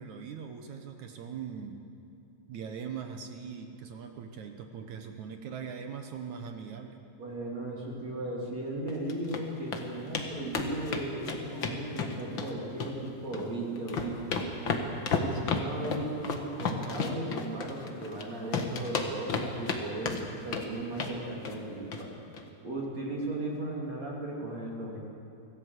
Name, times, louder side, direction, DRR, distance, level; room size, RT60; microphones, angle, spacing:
voice 1, 0.0-1.8 2.5-7.0, right 7 dB, 65° right, 6 dB, 2.0 m, -41 dB
voice 2, 7.2-14.4 15.2-22.2 22.6-25.0, right 1 dB, 45° right, -2 dB, 3.8 m, -36 dB
sound 1, 8.9-9.4 9.7-9.8 10.1-10.3 10.5-12.5 12.8-13.5 13.8-18.2 18.5-19.8 20.1-20.7 21.0-21.2 21.4-21.6 21.9-22.0 22.3-22.4, left 5 dB, 55° left, 1.3 m, -32 dB
25.5 x 17.5 x 8.2 m, 2.8 s
omnidirectional pair, 4.7 m